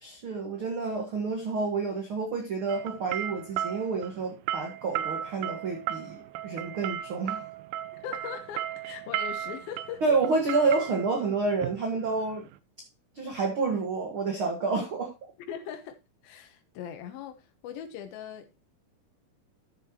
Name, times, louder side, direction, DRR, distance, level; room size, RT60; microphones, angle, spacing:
voice 1, 0.0-7.4 10.0-12.5 13.2-15.1, right 4 dB, 45° right, 1.9 m, -29 dB
sound 1, 2.7-12.6, right 11 dB, 85° right, 2.5 m, -35 dB
voice 2, 8.0-10.0 15.5-16.0 16.2-18.6, left 9 dB, 80° left, 3.0 m, -40 dB
13.0 x 6.9 x 2.9 m
omnidirectional pair, 4.2 m